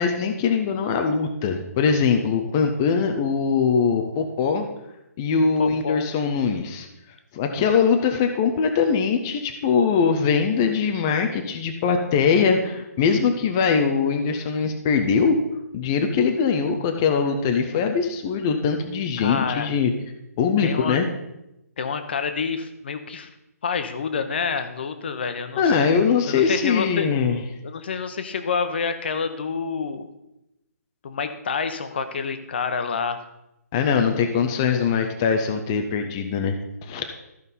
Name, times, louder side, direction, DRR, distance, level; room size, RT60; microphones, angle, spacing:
voice 1, 0.0-4.7 5.2-6.9 7.3-15.4 15.7-19.9 20.4-21.1 25.6-27.4 33.7-37.0, left 6 dB, 10° left, 4 dB, 0.3 m, -22 dB
voice 2, 5.6-6.1 19.2-19.7 20.6-21.0 21.8-23.3 23.6-25.8 26.3-27.1 27.6-30.1 31.0-33.2, left 5 dB, 40° left, 9 dB, 0.8 m, -28 dB
14.0 x 5.3 x 4.1 m, 0.89 s
hypercardioid pair, 175°, 9 cm